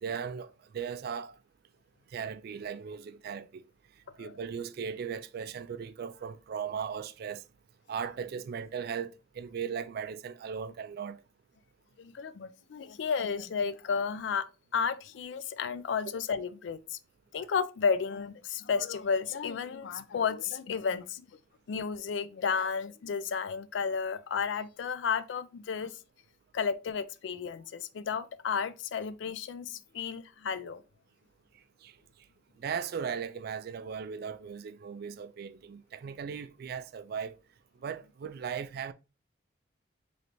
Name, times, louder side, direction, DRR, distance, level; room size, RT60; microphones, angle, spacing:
voice 1, 0.0-0.5 0.7-1.3 2.1-3.6 4.2-7.4 7.9-9.1 9.4-11.2 16.1-16.2 31.8-31.9 32.6-37.4 37.8-38.9, right 7 dB, 55° right, 0.3 m, -37 dB
voice 2, 12.0-14.5 14.7-17.0 17.3-21.3 21.7-26.0 26.5-30.8, left 6 dB, 65° left, 0.3 m, -32 dB
3.8 x 3.2 x 2.9 m
head